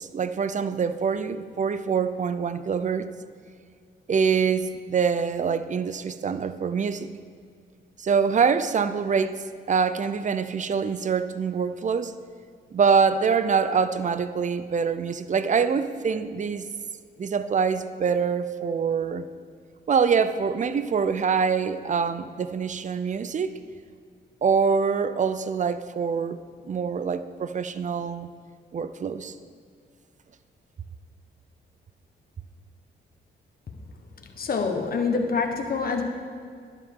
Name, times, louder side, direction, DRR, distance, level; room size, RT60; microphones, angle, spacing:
voice 1, 0.0-3.1 4.1-7.1 8.0-12.1 12.7-16.7 17.2-19.3 19.9-23.5 24.4-28.3 28.7-29.3, right 6 dB, 40° right, 12 dB, 0.5 m, -25 dB
voice 2, 34.4-36.0, left 4 dB, 50° left, 3 dB, 1.3 m, -26 dB
11.5 x 11.0 x 3.7 m, 2.1 s
cardioid pair, 90°, 20 cm